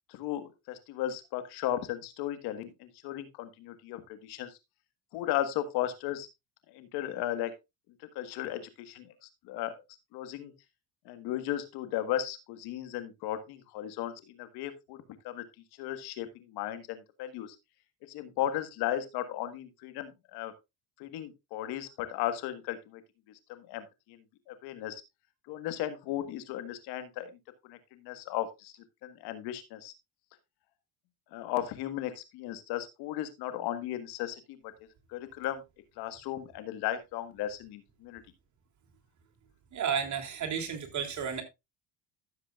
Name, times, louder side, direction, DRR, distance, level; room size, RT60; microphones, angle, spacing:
voice 1, 0.1-4.5 5.1-6.3 6.7-7.5 8.1-9.1 9.5-9.7 10.1-10.5 11.0-15.0 15.2-15.4 15.8-17.5 18.1-20.5 21.0-23.0 23.5-24.2 24.5-25.0 25.5-27.3 27.7-28.7 29.0-29.9 31.3-34.4 35.1-35.6 36.0-38.2, left 12 dB, 75° left, 10 dB, 1.6 m, -35 dB
voice 2, 39.7-41.4, right 7 dB, 45° right, 2 dB, 3.1 m, -32 dB
14.0 x 7.5 x 2.4 m, 0.22 s
supercardioid pair, 85°, 39 cm